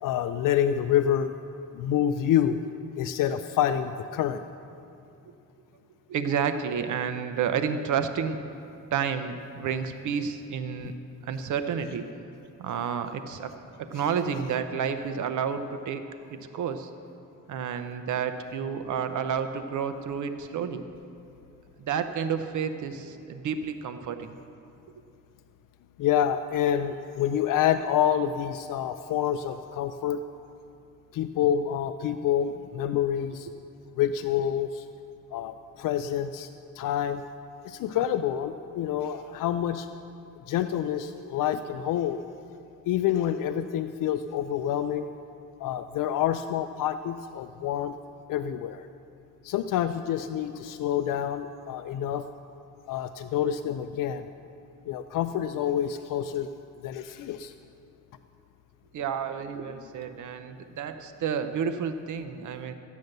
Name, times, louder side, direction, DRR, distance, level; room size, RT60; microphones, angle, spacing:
voice 1, 0.0-1.4 1.7-2.6 3.0-4.4 10.8-10.9 26.0-30.2 31.1-33.5 34.0-34.9 35.3-36.5 36.8-37.2 37.6-39.9 40.5-42.2 42.8-45.1 45.6-48.0 48.3-48.9 49.4-52.3 52.9-54.3 54.9-56.5 56.8-57.5, left 10 dB, 75° left, 9 dB, 0.5 m, -27 dB
voice 2, 6.1-8.4 8.9-10.9 11.2-12.1 12.6-16.1 16.5-16.9 17.5-20.8 21.8-24.4 58.9-62.7, right 7 dB, 65° right, 9 dB, 0.7 m, -30 dB
14.5 x 9.3 x 6.6 m, 2.6 s
cardioid pair, 135°, 32 cm